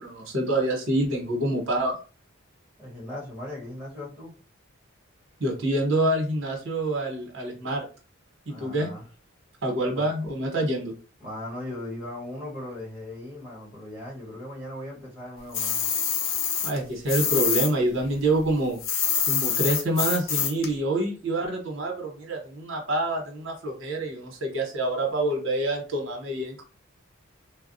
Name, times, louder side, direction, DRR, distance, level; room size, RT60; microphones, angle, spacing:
voice 1, 0.0-1.9 5.4-7.8 8.5-8.9 9.6-10.9 16.6-18.8 19.3-26.6, right 1 dB, 75° right, 1 dB, 1.0 m, -26 dB
voice 2, 2.8-4.4 8.5-9.1 9.9-10.1 11.2-15.8, left 1 dB, 5° right, -5 dB, 1.3 m, -38 dB
sound 1, 15.5-17.7 18.0-20.7, left 8 dB, 80° left, 0.6 m, -26 dB
3.2 x 2.3 x 2.6 m, 0.35 s
head